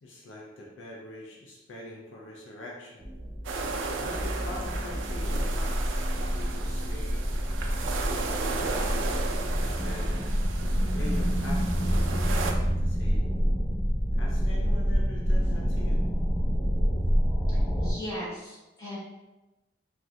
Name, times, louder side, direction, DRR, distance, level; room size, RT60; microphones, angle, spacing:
voice 1, 0.0-3.1 4.0-7.2 8.1-8.9 9.6-10.2 10.9-13.2 14.1-16.0, left 1 dB, 80° left, -2 dB, 0.5 m, -43 dB
sound 1, 3.0-17.9, equal, 5° right, 0.5 m, -27 dB
sound 2, 3.4-12.5, right 4 dB, 85° right, 0.4 m, -35 dB
voice 2, 17.8-19.0, equal, 20° left, -10 dB, 1.3 m, -37 dB
3.2 x 2.4 x 2.6 m, 1.1 s
head